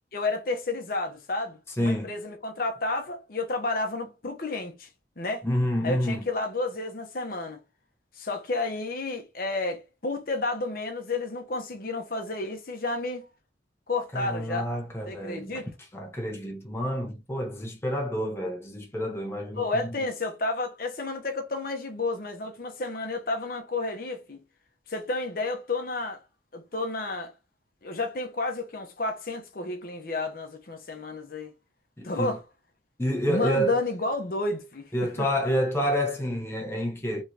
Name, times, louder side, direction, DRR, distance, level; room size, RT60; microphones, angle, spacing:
voice 1, 0.1-4.9 5.2-5.5 5.8-7.6 8.2-13.2 13.9-14.7 15.1-15.7 19.5-24.4 24.9-26.2 26.5-27.3 27.8-31.5 32.0-32.4 33.3-35.3, left 2 dB, 50° left, 0.8 m, -31 dB
voice 2, 5.4-6.2 14.1-15.6 15.9-19.9 32.0-32.3 33.0-33.8 34.9-37.2, equal, 15° left, 0.7 m, -28 dB
3.6 x 3.1 x 2.7 m
head